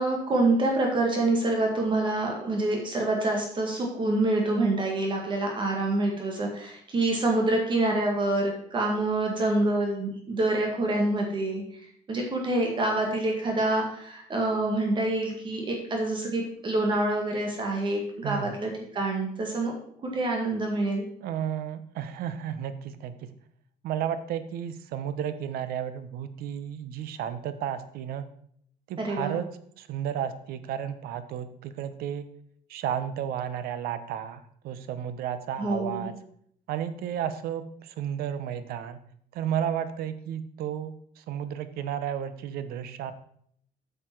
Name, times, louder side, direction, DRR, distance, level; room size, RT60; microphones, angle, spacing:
voice 1, 0.0-11.6 12.1-19.7 20.0-21.0 29.0-29.4 35.6-36.1, right 2 dB, 30° right, 1 dB, 1.8 m, -26 dB
voice 2, 21.2-23.3 23.8-28.2 28.9-29.5 29.8-32.2 32.7-36.1 36.7-39.0 39.3-43.1, right 9 dB, 85° right, 12 dB, 0.9 m, -33 dB
8.6 x 6.8 x 4.5 m, 0.66 s
cardioid pair, 150°, 15 cm